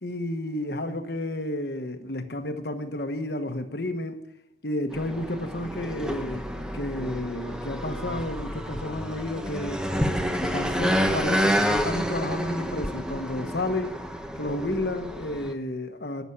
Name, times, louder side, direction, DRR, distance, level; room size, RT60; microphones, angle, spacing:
voice 1, 0.0-4.2 4.6-6.5 6.7-9.9 10.4-13.9 14.4-16.2, left 1 dB, 55° left, 1.2 m, -31 dB
sound 1, 4.9-15.5, equal, 5° right, 0.8 m, -29 dB
11.5 x 7.2 x 8.6 m
head